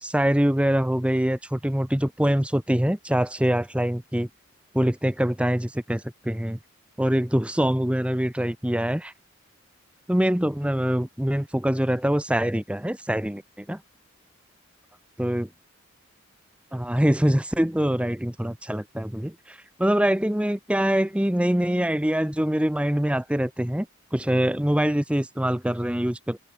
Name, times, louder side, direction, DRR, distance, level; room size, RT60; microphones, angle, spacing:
voice 1, 0.0-4.3 4.7-6.6 7.0-9.1 10.1-13.8 15.2-15.5 16.7-23.9 24.1-26.4, equal, 5° right, 0.7 m, -24 dB
open air
head